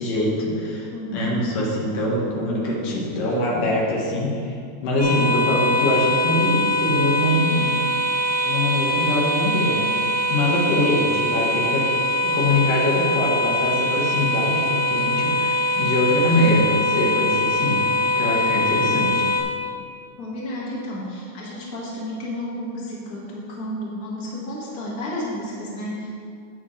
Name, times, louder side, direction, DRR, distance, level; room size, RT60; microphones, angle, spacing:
voice 1, 0.0-4.6 4.8-7.7 8.4-9.8 10.3-11.8 12.2-17.8 18.2-19.3, left 1 dB, 90° left, -3 dB, 3.2 m, -23 dB
voice 2, 0.9-1.5 20.2-26.1, left 1 dB, 35° left, -5 dB, 1.9 m, -31 dB
sound 1, 5.0-19.4, left 1 dB, 50° right, 0.4 m, -22 dB
11.5 x 8.8 x 3.3 m, 2.3 s
omnidirectional pair, 3.6 m